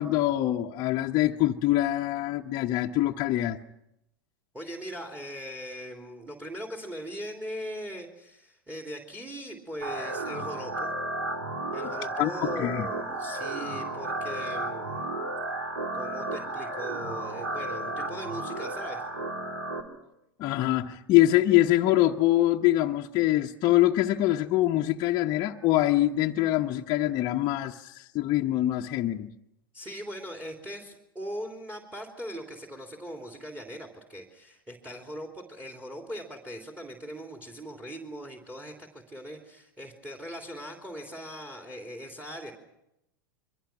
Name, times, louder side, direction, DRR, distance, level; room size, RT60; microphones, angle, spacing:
voice 1, 0.0-3.6 12.2-12.9 20.4-29.3, left 15 dB, 40° left, 1.0 m, -24 dB
voice 2, 4.5-10.9 11.7-15.1 15.9-19.1 29.7-42.5, equal, 10° right, 3.3 m, -40 dB
sound 1, 9.8-19.8, right 2 dB, 80° right, 3.7 m, -33 dB
28.0 x 23.0 x 6.1 m
hypercardioid pair, 95°, 11 cm